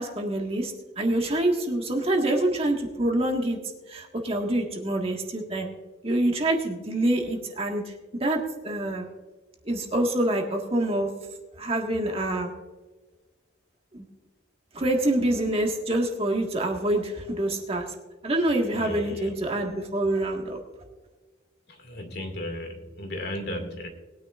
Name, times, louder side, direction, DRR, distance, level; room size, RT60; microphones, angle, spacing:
voice 1, 0.0-3.6 3.9-5.7 6.0-7.9 8.2-9.1 9.6-11.1 11.6-12.5 13.9-14.0 14.7-17.8 18.2-20.6, right 1 dB, 30° right, 1 dB, 1.6 m, -26 dB
voice 2, 18.7-19.4 21.7-23.9, left 1 dB, 55° left, 4 dB, 2.2 m, -35 dB
21.0 x 9.9 x 2.5 m, 1.3 s
head